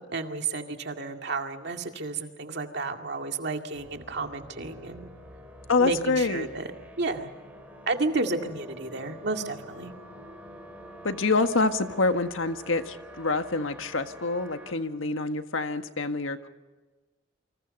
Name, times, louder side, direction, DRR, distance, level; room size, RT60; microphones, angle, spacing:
voice 1, 0.1-5.1 5.8-6.6 7.0-7.3 7.9-9.9, right 3 dB, 60° right, 4 dB, 2.2 m, -31 dB
sound 1, 3.7-14.7, equal, 10° right, 4.3 m, -47 dB
voice 2, 5.7-6.5 11.0-16.5, left 3 dB, 90° left, 8 dB, 1.6 m, -26 dB
28.5 x 25.5 x 5.4 m, 1.2 s
head